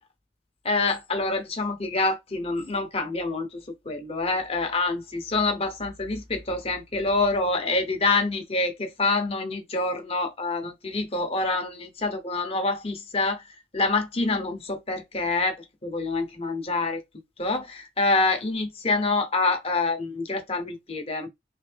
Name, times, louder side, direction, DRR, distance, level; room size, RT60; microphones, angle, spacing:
voice 1, 0.6-13.4 13.7-17.0 17.4-21.3, left 3 dB, 35° left, 1.0 m, -26 dB
3.9 x 2.7 x 3.4 m
head